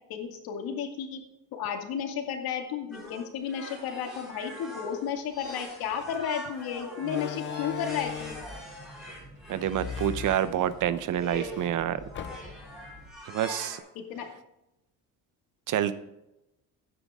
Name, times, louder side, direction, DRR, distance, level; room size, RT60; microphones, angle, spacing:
voice 1, 0.1-1.2 1.5-8.3 14.1-14.3, left 7 dB, 80° left, 4 dB, 2.3 m, -33 dB
sound 1, 2.9-10.5 11.1-11.7 12.1-13.8, equal, ahead, 4.7 m, -43 dB
Slam, 5.9-6.1 7.0-8.6 9.6-11.0 11.4-11.5 12.1-12.8, left 9 dB, 35° left, 0.5 m, -38 dB
sound 2, 7.9-13.1, right 1 dB, 35° right, 3.6 m, -50 dB
voice 2, 9.5-12.0 13.3-13.8 15.7-15.9, right 10 dB, 60° right, 13 dB, 0.8 m, -27 dB
13.5 x 9.7 x 3.7 m, 0.90 s
cardioid pair, 160°, 36 cm